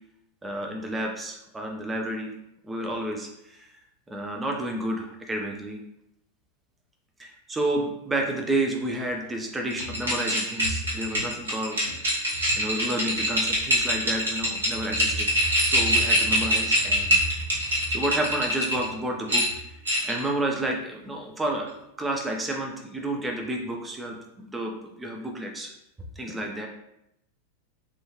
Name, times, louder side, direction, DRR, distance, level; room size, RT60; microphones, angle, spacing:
voice 1, 0.4-2.3 2.6-3.7 4.1-5.8 7.2-12.2 12.6-15.3 15.6-17.2 17.9-21.7 22.0-25.7 26.2-26.7, right 1 dB, 10° right, 2 dB, 0.4 m, -30 dB
sound 1, 9.7-18.8 19.3-20.3, equal, 75° right, 1.0 m, -24 dB
3.4 x 2.6 x 2.9 m, 0.81 s
figure-of-eight pair, 90°, 0 cm